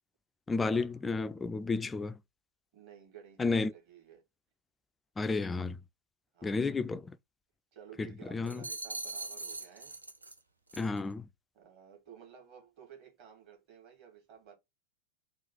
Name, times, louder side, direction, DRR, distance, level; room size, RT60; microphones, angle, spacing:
voice 1, 0.5-2.2 3.4-3.7 5.2-5.8 6.4-7.2 8.0-8.6 10.8-11.3, left 3 dB, 15° left, 0.3 m, -32 dB
voice 2, 2.7-4.2 6.3-6.7 7.7-10.0 11.5-14.6, right 8 dB, 45° right, 2.1 m, -54 dB
sound 1, 8.5-10.4 10.7-11.0, right 2 dB, 80° right, 0.6 m, -41 dB
3.8 x 2.4 x 4.6 m
figure-of-eight pair, 90°, 0 cm